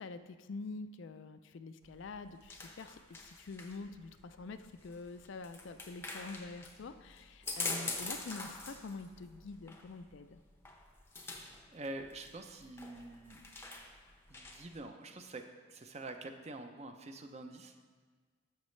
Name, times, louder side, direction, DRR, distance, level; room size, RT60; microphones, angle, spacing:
voice 1, 0.0-10.4, left 3 dB, 60° left, 10 dB, 0.4 m, -46 dB
sound 1, 1.8-14.8, left 3 dB, 10° left, 0.6 m, -45 dB
voice 2, 11.2-13.4 14.3-17.8, right 2 dB, 30° right, 6 dB, 0.5 m, -46 dB
11.5 x 7.2 x 3.2 m, 1.5 s
head